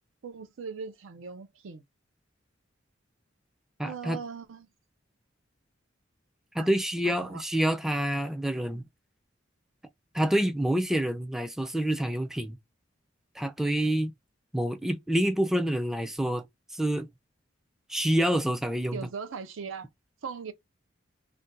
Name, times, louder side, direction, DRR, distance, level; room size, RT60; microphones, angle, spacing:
voice 1, 0.2-1.8 3.8-4.7 6.6-6.7 7.0-7.4 18.9-19.9 20.2-20.5, right 5 dB, 85° right, 0.5 m, -39 dB
voice 2, 3.8-4.2 6.5-8.8 10.1-12.6 13.4-14.1 14.5-16.4 16.7-17.1 17.9-19.0, right 1 dB, ahead, 0.3 m, -27 dB
2.5 x 2.2 x 3.9 m
head